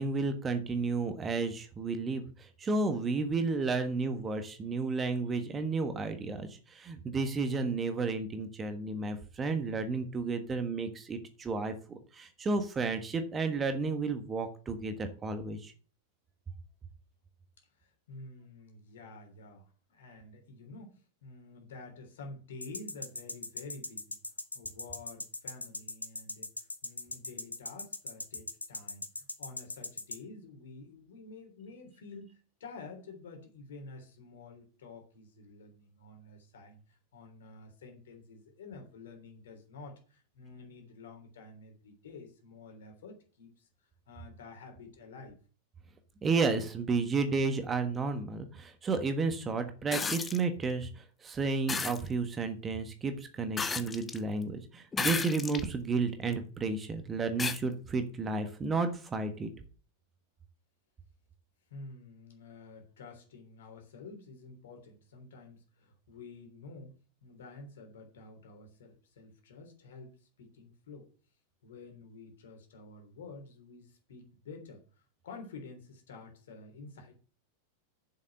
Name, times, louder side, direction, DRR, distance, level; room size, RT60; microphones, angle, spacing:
voice 1, 0.0-15.7 46.2-59.5, right 4 dB, 20° right, 8 dB, 1.4 m, -32 dB
voice 2, 17.8-24.2 24.5-32.3 32.6-43.7 44.1-45.3 61.7-67.0 67.2-71.1 71.6-77.2, left 3 dB, 60° left, 4 dB, 3.4 m, -50 dB
sound 1, 22.6-30.2, left 2 dB, 80° left, 1.1 m, -39 dB
sound 2, 49.9-50.4 51.7-52.0 53.6-54.2 54.9-55.7 56.3-56.4 57.4-57.6 59.1-59.2, left 5 dB, 15° left, 0.8 m, -33 dB
7.4 x 6.4 x 7.8 m, 0.38 s
figure-of-eight pair, 90°, 0 cm